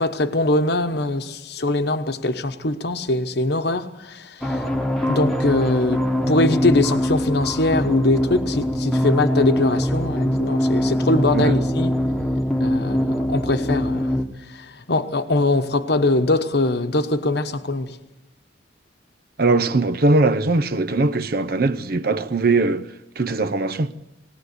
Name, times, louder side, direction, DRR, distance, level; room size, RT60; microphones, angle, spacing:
voice 1, 0.0-4.6 5.1-11.9 12.6-14.1 14.5-18.0, left 2 dB, 60° left, 1.2 m, -22 dB
sound 1, 4.4-14.2, equal, ahead, 1.2 m, -22 dB
voice 2, 19.4-22.9 23.2-23.9, right 3 dB, 55° right, 0.7 m, -20 dB
19.5 x 19.0 x 8.1 m
head